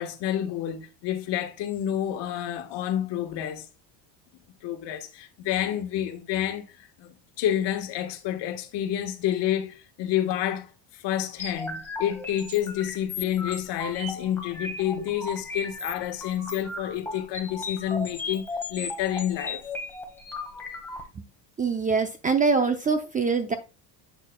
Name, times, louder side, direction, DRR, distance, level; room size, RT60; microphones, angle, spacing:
voice 1, 0.0-3.7 4.6-19.6, left 11 dB, 55° left, 1.5 m, -29 dB
sound 1, 11.4-21.0, left 3 dB, 5° left, 1.6 m, -36 dB
voice 2, 21.6-23.6, right 4 dB, 15° right, 0.5 m, -24 dB
8.3 x 6.5 x 2.3 m
cardioid pair, 130°, 48 cm